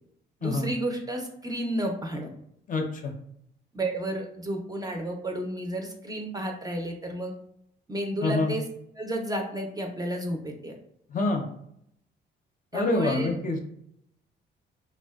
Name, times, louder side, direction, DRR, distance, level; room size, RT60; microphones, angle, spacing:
voice 1, 0.4-2.3 3.7-7.3 7.9-8.7 8.9-10.7 12.7-13.3, right 1 dB, 20° right, 2 dB, 0.4 m, -31 dB
voice 2, 2.7-3.1 8.2-8.5 11.1-11.4 12.7-13.6, left 2 dB, 40° left, 3 dB, 0.5 m, -26 dB
2.5 x 2.1 x 2.3 m, 0.72 s
cardioid pair, 90°, 20 cm